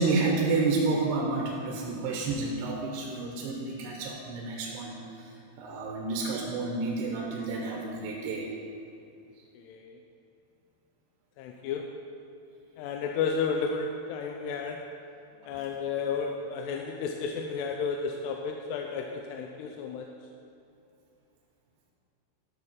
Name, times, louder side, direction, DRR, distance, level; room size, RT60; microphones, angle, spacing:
voice 1, 0.0-5.3 5.6-8.5 15.4-15.6, right 3 dB, 80° right, -1 dB, 3.0 m, -30 dB
voice 2, 9.5-10.0 11.4-12.0 12.8-14.9 15.4-20.1, left 5 dB, 85° left, 2 dB, 2.7 m, -32 dB
12.0 x 6.7 x 5.4 m, 2.6 s
omnidirectional pair, 4.8 m